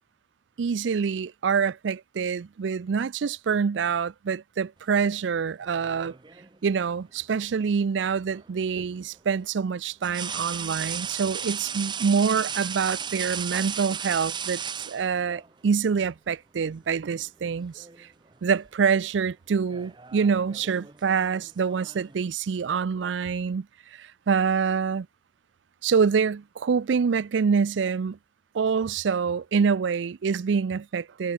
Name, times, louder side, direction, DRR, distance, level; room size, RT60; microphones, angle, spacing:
voice 1, 0.6-6.1 6.6-14.6 14.9-18.1 18.4-23.7 23.9-25.1 25.8-28.2 28.5-31.3, right 6 dB, 85° right, 0.4 m, -26 dB
sound 1, 5.7-6.6 8.3-8.5 10.0-15.5 16.7-16.9 17.3-18.0 18.3-18.7 19.5-22.1, right 7 dB, 25° right, 0.7 m, -35 dB
head